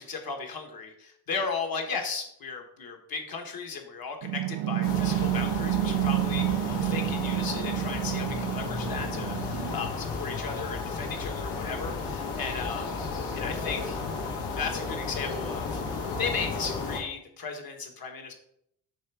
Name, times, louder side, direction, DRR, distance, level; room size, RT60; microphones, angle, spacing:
voice 1, 0.0-13.1 13.3-14.0 14.5-18.3, left 5 dB, 60° left, 3 dB, 1.5 m, -36 dB
sound 1, 4.2-9.9, right 17 dB, 70° right, 0.5 m, -29 dB
sound 2, 4.8-17.0, left 4 dB, 80° left, 1.5 m, -33 dB
7.2 x 3.4 x 6.1 m, 0.72 s
cardioid pair, 120°, 41 cm